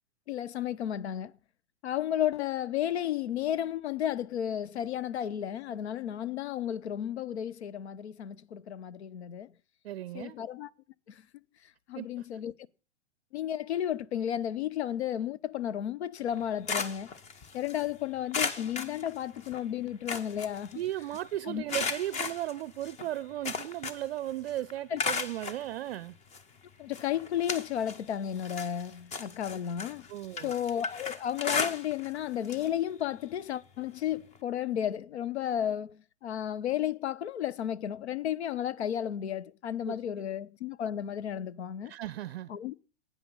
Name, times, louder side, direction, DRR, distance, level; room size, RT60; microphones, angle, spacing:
voice 1, 0.3-1.3 1.8-9.5 10.1-10.7 11.1-11.2 11.9-12.5 13.3-17.1 17.5-20.8 21.5-21.6 24.9-25.0 26.8-30.1 30.4-41.9 42.5-42.7, left 10 dB, 65° left, 0.7 m, -33 dB
voice 2, 9.8-10.4 12.0-12.2 20.7-26.2 30.1-30.5 39.9-40.0 41.8-42.5, right 13 dB, 55° right, 0.5 m, -36 dB
sound 1, 16.3-17.8 18.3-19.6 19.9-21.2 21.7-24.2 24.5-25.6 26.3-26.4 26.9-28.0 28.4-32.2 32.4-32.7 33.0-33.1 34.3-34.4, left 4 dB, 20° left, 0.8 m, -35 dB
12.0 x 9.3 x 5.4 m
hypercardioid pair, 115°, 36 cm